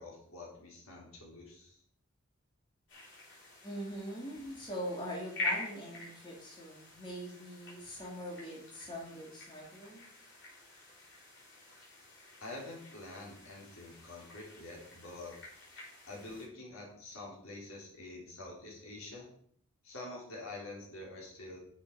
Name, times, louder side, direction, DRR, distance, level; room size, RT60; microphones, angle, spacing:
voice 1, 0.0-1.8 12.4-15.4 16.1-19.3 19.8-21.6, left 2 dB, 70° left, -3 dB, 3.5 m, -47 dB
sound 1, 2.9-16.5, left 2 dB, 55° left, 3.3 m, -46 dB
voice 2, 3.6-10.0, equal, 20° left, -4 dB, 2.1 m, -42 dB
10.0 x 6.5 x 4.7 m, 0.63 s
head